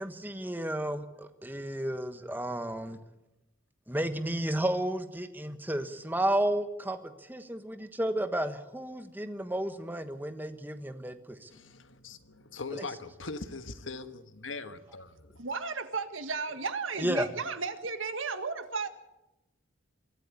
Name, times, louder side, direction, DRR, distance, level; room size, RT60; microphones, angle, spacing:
voice 1, 0.0-3.0 3.9-11.5 12.7-12.8 17.0-17.3, right 1 dB, 10° right, 1.3 m, -32 dB
voice 2, 11.5-15.4, left 3 dB, 75° left, 1.4 m, -41 dB
voice 3, 15.4-18.9, right 4 dB, 85° right, 1.8 m, -34 dB
24.0 x 14.0 x 8.3 m
head